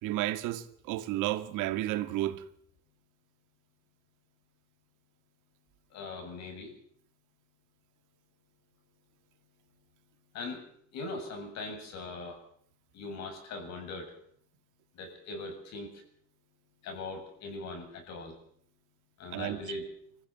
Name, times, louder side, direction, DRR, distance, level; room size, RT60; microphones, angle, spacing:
voice 1, 0.0-2.4 19.3-19.6, right 15 dB, 80° right, 2.1 m, -32 dB
voice 2, 5.9-6.7 10.3-10.6 10.9-12.4 12.9-14.1 14.9-16.0 16.8-18.4 19.2-19.8, left 3 dB, 60° left, 7.7 m, -40 dB
26.0 x 15.0 x 9.1 m
cardioid pair, 165°, 30 cm